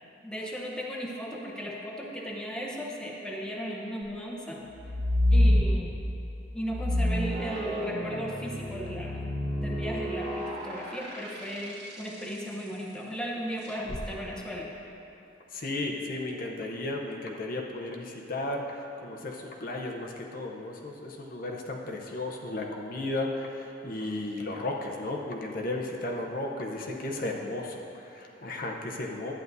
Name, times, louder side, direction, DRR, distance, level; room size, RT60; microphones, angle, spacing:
voice 1, 0.2-4.6 5.3-6.0 6.5-9.2 9.6-14.7, equal, 5° left, -3 dB, 0.8 m, -36 dB
sound 1, 4.7-6.2 6.6-12.1 13.7-14.0, left 1 dB, 60° right, 1.5 m, -28 dB
voice 2, 15.5-29.3, left 2 dB, 50° left, 0 dB, 0.7 m, -34 dB
11.5 x 9.2 x 2.7 m, 2.9 s
head